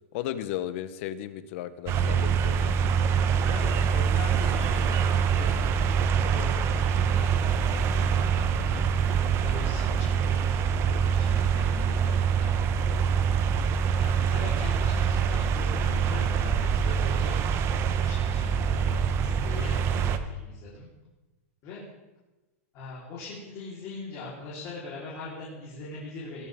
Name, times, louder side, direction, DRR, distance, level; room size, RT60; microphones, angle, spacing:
voice 1, 0.1-2.7, left 12 dB, 55° left, 13 dB, 1.0 m, -35 dB
sound 1, 1.9-20.2, right 6 dB, 30° right, 0.9 m, -25 dB
voice 2, 3.5-5.9 6.3-12.8 13.9-17.4 18.0-20.9 21.6-21.8 22.7-26.5, left 3 dB, 40° left, -6 dB, 3.9 m, -41 dB
20.5 x 11.0 x 3.6 m, 1.1 s
supercardioid pair, 145°, 8 cm